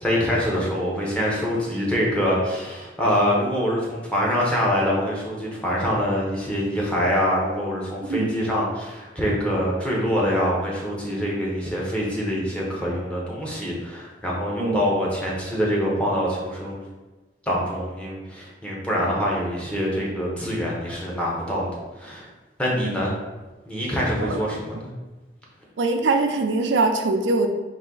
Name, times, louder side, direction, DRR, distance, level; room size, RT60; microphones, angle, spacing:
voice 1, 0.0-16.8 17.5-21.7 22.0-22.3 22.6-23.1 23.7-24.9, equal, 5° left, -4 dB, 0.9 m, -25 dB
voice 2, 8.0-8.3 14.6-14.8 22.8-23.0 24.2-24.4 25.8-27.5, right 3 dB, 85° right, 6 dB, 0.5 m, -22 dB
4.1 x 2.7 x 3.8 m, 1.2 s
head